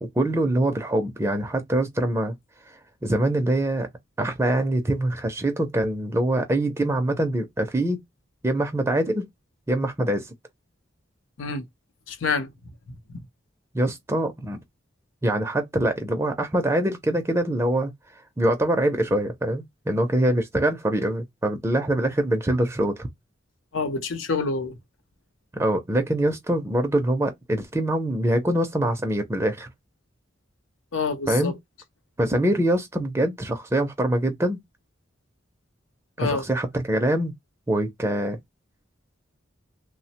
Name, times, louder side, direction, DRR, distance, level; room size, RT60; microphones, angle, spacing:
voice 1, 0.0-2.4 2.7-3.9 4.2-8.0 8.4-9.3 9.7-10.3 13.7-14.6 15.2-17.9 18.4-23.1 25.5-29.7 31.3-31.5 32.2-34.6 36.2-37.3 37.7-38.4, right 1 dB, 15° right, 0.4 m, -24 dB
voice 2, 12.1-12.5 23.7-24.7 30.9-31.5 36.2-36.4, left 4 dB, 90° left, 0.6 m, -27 dB
3.0 x 2.0 x 2.7 m
head